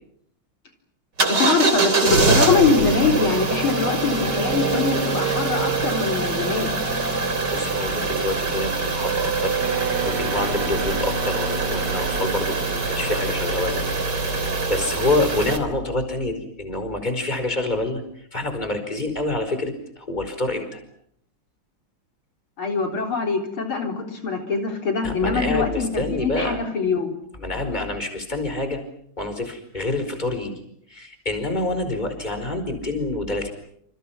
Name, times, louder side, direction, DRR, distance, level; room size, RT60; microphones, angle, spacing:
voice 1, 1.2-6.7 22.6-27.1, left 5 dB, 85° left, 3 dB, 4.7 m, -23 dB
sound 1, 1.2-15.6, right 4 dB, 55° right, 4.1 m, -23 dB
voice 2, 7.5-13.8 14.4-20.8 25.0-26.6 27.4-28.8 29.2-30.5 30.9-33.5, left 2 dB, 20° left, 7 dB, 5.0 m, -27 dB
Wind instrument woodwind instrument, 9.6-13.1, right 7 dB, 70° right, 2.2 m, -34 dB
29.0 x 28.5 x 6.0 m, 0.70 s
omnidirectional pair, 2.2 m